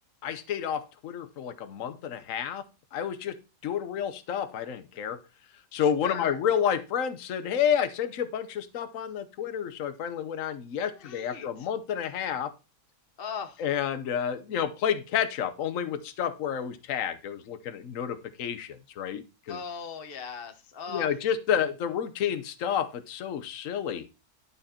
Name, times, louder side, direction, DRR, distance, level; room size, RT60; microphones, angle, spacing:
voice 1, 0.2-2.6 2.9-5.2 5.7-12.5 13.6-19.6 20.9-24.0, left 8 dB, 60° left, 1.2 m, -30 dB
voice 2, 5.8-6.4 10.9-11.7 13.2-13.6 19.5-21.1, left 6 dB, 40° left, 1.1 m, -39 dB
11.5 x 5.3 x 4.2 m
omnidirectional pair, 1.6 m